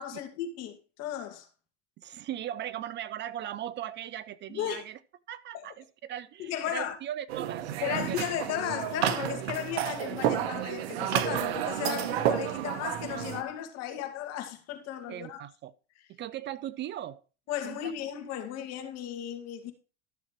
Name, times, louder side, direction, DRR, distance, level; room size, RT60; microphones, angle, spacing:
voice 1, 0.0-1.5 4.5-4.9 5.5-5.7 6.4-7.0 7.8-15.4 17.5-19.7, left 10 dB, 55° left, 2.3 m, -35 dB
voice 2, 2.0-5.0 5.3-8.4 15.1-15.7 16.1-17.2 17.6-17.9, right 11 dB, 35° right, 0.5 m, -38 dB
sound 1, 7.3-13.4, right 11 dB, 75° right, 1.2 m, -31 dB
13.0 x 7.2 x 3.1 m
supercardioid pair, 110°, 32 cm